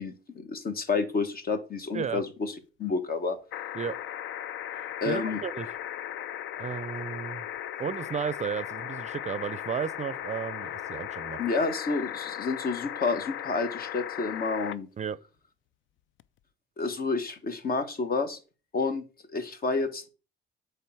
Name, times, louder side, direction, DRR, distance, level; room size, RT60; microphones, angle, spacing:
voice 1, 0.0-2.5 2.8-3.4 5.0-5.4 11.4-14.9 16.8-18.4 18.7-19.0 19.3-20.1, left 4 dB, 50° left, 1.3 m, -29 dB
sound 1, 3.5-14.8 16.2-16.3, left 12 dB, 75° left, 0.4 m, -37 dB
voice 2, 4.7-5.7 6.6-7.4 7.8-11.4 15.0-15.2, right 7 dB, 35° right, 0.5 m, -33 dB
8.2 x 3.4 x 5.7 m
cardioid pair, 90°, 20 cm